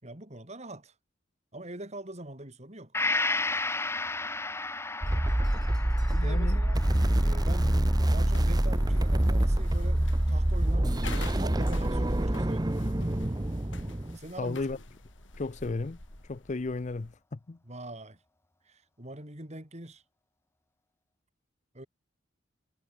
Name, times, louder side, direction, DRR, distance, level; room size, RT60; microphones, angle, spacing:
voice 1, 0.0-0.9 1.5-2.9 6.1-6.8 7.2-12.7 14.1-14.7 17.6-18.2 18.7-20.0 21.7-21.9, right 1 dB, 35° right, 5.3 m, -43 dB
Gong, 2.9-10.6 11.0-11.1, left 3 dB, 15° left, 1.2 m, -35 dB
sound 1, 5.0-14.2, right 1 dB, 20° right, 0.9 m, -26 dB
voice 2, 6.2-6.6 14.4-14.8 15.4-16.0 16.3-17.6, left 3 dB, 40° left, 0.6 m, -34 dB
sound 2, 8.2-17.2, left 3 dB, 80° left, 4.5 m, -47 dB
head